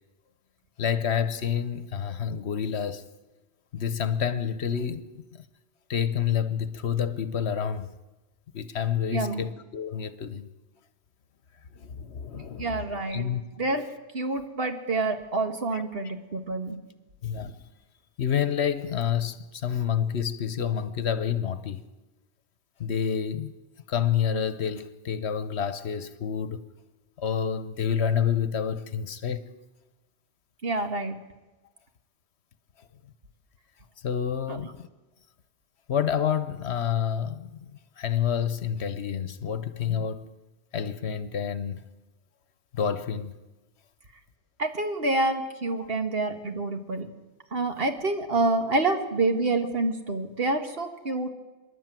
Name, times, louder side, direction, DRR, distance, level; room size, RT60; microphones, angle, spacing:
voice 1, 0.8-3.0 3.7-5.0 5.3-5.4 5.9-7.9 8.5-10.5 11.7-12.7 13.1-13.4 15.7-15.8 17.2-17.6 18.2-21.8 22.8-23.5 23.9-26.6 27.2-29.4 34.0-34.9 35.9-40.3 40.7-41.8 42.7-43.4 45.8-45.9, left 8 dB, 70° left, 1.2 m, -28 dB
voice 2, 9.1-9.4 12.6-13.3 13.6-13.8 14.1-16.8 30.6-31.2 34.5-34.6 44.6-47.1 47.5-51.3, right 2 dB, 60° right, 1.9 m, -27 dB
26.0 x 11.5 x 9.1 m
omnidirectional pair, 1.1 m